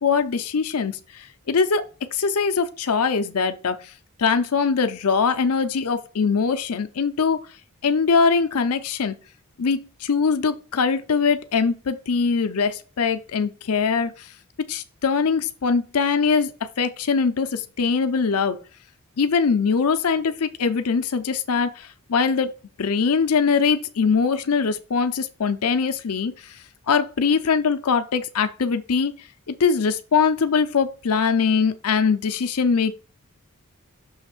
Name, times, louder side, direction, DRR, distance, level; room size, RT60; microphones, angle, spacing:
voice 1, 0.0-3.9 4.2-7.4 7.8-9.2 9.6-14.3 14.7-16.5 16.8-18.6 19.2-22.5 22.8-29.1 29.5-32.9, left 5 dB, 75° left, 0.6 m, -22 dB
6.4 x 3.2 x 5.9 m
head